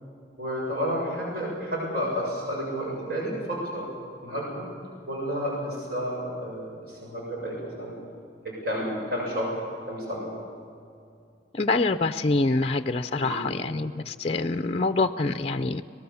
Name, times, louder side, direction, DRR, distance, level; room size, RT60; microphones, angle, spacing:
voice 1, 0.4-3.9 4.2-4.7 5.1-7.9 8.4-10.3 13.2-13.5, equal, 55° right, -3 dB, 6.8 m, -31 dB
voice 2, 11.5-15.8, left 3 dB, 35° left, 9 dB, 0.5 m, -25 dB
24.5 x 19.0 x 7.0 m, 2.4 s
head